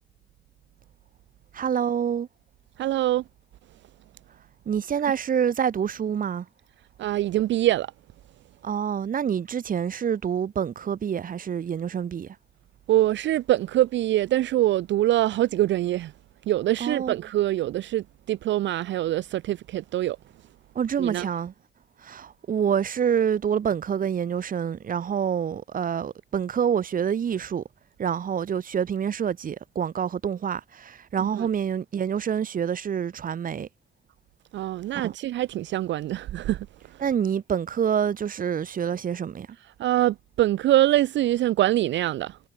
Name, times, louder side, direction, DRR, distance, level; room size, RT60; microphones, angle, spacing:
voice 1, 1.5-2.3 4.7-6.5 8.6-12.4 16.8-17.2 20.7-21.5 22.0-27.6 28.0-33.7 34.9-35.1 37.0-39.5, right 8 dB, 45° right, 1.0 m, -27 dB
voice 2, 2.8-3.2 7.0-7.9 12.9-16.1 16.5-20.2 21.0-21.3 31.2-31.5 34.5-36.7 36.9-37.0 39.8-42.4, right 14 dB, 65° right, 0.5 m, -24 dB
cardioid pair, 90°, 20 cm